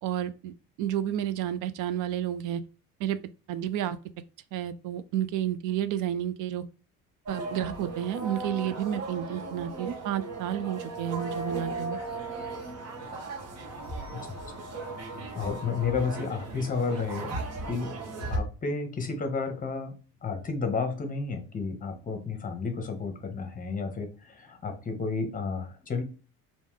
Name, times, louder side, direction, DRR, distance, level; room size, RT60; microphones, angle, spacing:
voice 1, 0.0-2.6 3.0-3.2 3.5-4.0 4.5-6.6 7.3-12.0, right 10 dB, 65° right, 0.5 m, -31 dB
sound 1, 7.3-18.4, right 2 dB, 50° right, 1.1 m, -37 dB
voice 2, 15.3-18.0 18.3-20.0 20.2-26.0, left 4 dB, 25° left, 0.9 m, -32 dB
3.1 x 2.6 x 3.6 m
cardioid pair, 105°, 33 cm